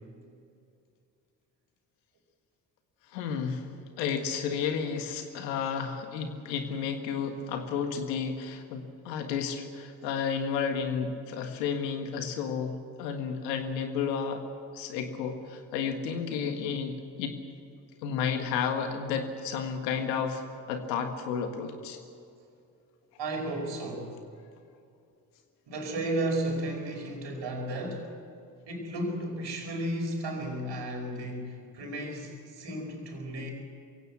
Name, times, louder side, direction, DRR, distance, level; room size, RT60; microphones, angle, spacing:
voice 1, 3.1-3.7 4.0-14.5 14.7-17.4 18.0-20.4 20.7-22.0, left 6 dB, 85° left, 6 dB, 1.7 m, -32 dB
voice 2, 23.2-24.1 25.7-28.1 28.7-33.5, right 1 dB, 60° right, 3 dB, 5.0 m, -33 dB
22.0 x 16.5 x 8.4 m, 2.5 s
hypercardioid pair, 45°, 48 cm